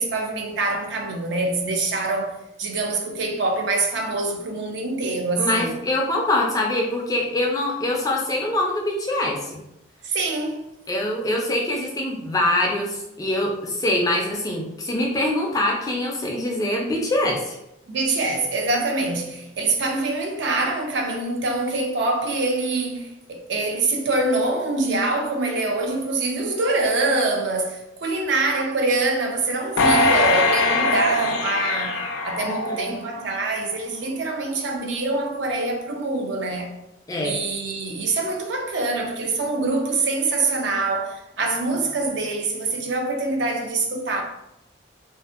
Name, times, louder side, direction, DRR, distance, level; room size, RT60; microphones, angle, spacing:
voice 1, 0.0-5.7 10.0-10.7 17.9-36.7 37.2-44.2, right 2 dB, 60° right, 0.4 m, -25 dB
voice 2, 5.4-9.6 10.9-17.6 32.4-32.9 37.1-37.4, left 1 dB, 15° left, 0.3 m, -24 dB
sound 1, 29.8-33.2 33.7-33.8, left 2 dB, 90° left, 0.4 m, -21 dB
2.6 x 2.4 x 2.4 m
head